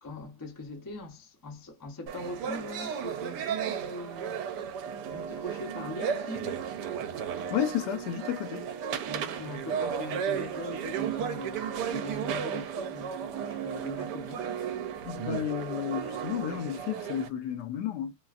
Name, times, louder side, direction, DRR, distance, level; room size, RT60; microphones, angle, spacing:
voice 1, 0.0-4.4 5.1-6.7 9.1-14.5, left 2 dB, 30° left, 0.3 m, -41 dB
sound 1, 2.1-17.3, right 8 dB, 80° right, 1.2 m, -34 dB
voice 2, 7.5-8.7 15.0-18.1, left 10 dB, 75° left, 1.2 m, -32 dB
3.0 x 2.4 x 2.3 m
omnidirectional pair, 1.8 m